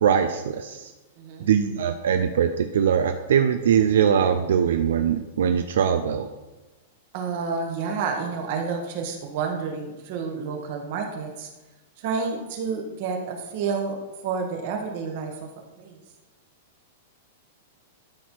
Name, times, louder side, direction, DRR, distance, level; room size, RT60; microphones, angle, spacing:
voice 1, 0.0-0.9 1.4-6.3, right 8 dB, 85° right, 7 dB, 0.5 m, -21 dB
voice 2, 1.2-1.5 7.1-11.5 12.0-14.0 14.2-15.5 15.8-16.0, right 5 dB, 45° right, 3 dB, 1.4 m, -29 dB
12.5 x 4.3 x 4.6 m, 1.1 s
supercardioid pair, 165°, 0 cm